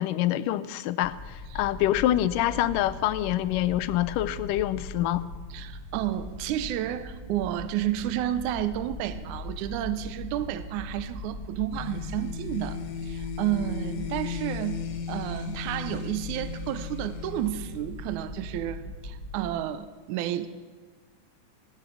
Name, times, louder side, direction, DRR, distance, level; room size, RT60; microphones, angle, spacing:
voice 1, 0.0-5.3, left 13 dB, 90° left, 14 dB, 2.3 m, -26 dB
sound 1, 1.0-19.5, left 1 dB, 35° left, 3.2 m, -40 dB
voice 2, 5.5-20.6, right 12 dB, 75° right, 11 dB, 2.1 m, -31 dB
sound 2, 11.7-18.4, left 7 dB, 65° left, 2.2 m, -37 dB
18.0 x 12.0 x 6.2 m, 1.4 s
omnidirectional pair, 3.7 m